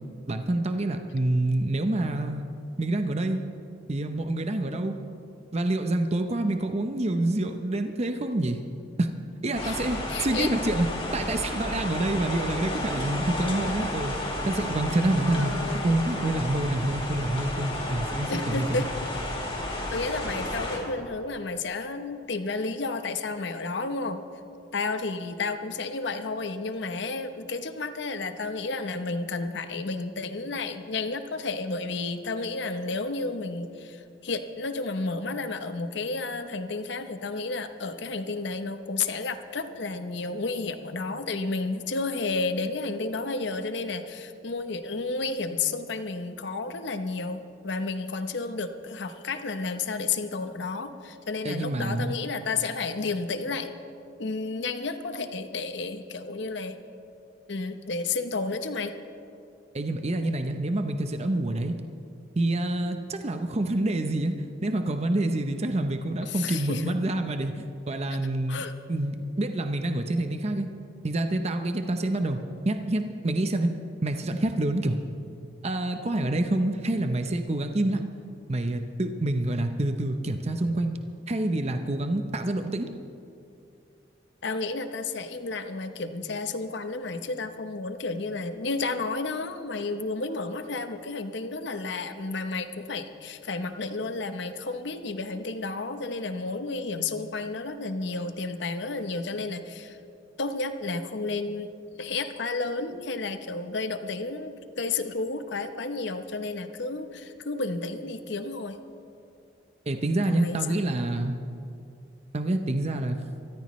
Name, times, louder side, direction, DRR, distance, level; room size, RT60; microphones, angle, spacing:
voice 1, 0.3-2.5 2.8-3.4 3.9-5.0 5.5-8.6 9.0-9.1 9.4-14.1 14.5-15.5 15.8-18.9 51.4-52.2 59.7-61.8 62.4-64.4 64.6-68.6 68.9-70.7 71.0-72.4 72.7-73.7 74.0-75.0 75.6-78.0 78.5-81.0 81.3-82.9 109.9-111.3 112.3-113.2, right 1 dB, 35° right, 6 dB, 0.7 m, -27 dB
sound 1, 9.5-20.8, left 1 dB, 30° left, 4.0 m, -32 dB
voice 2, 9.6-10.5 15.3-15.9 18.3-18.9 19.9-24.2 24.7-53.7 54.2-56.8 57.5-58.9 66.3-67.0 68.1-68.2 68.5-68.7 84.4-100.0 100.4-101.7 102.0-108.8 110.3-110.8, left 3 dB, 65° left, 9 dB, 0.8 m, -32 dB
24.5 x 13.5 x 3.1 m, 2.5 s
head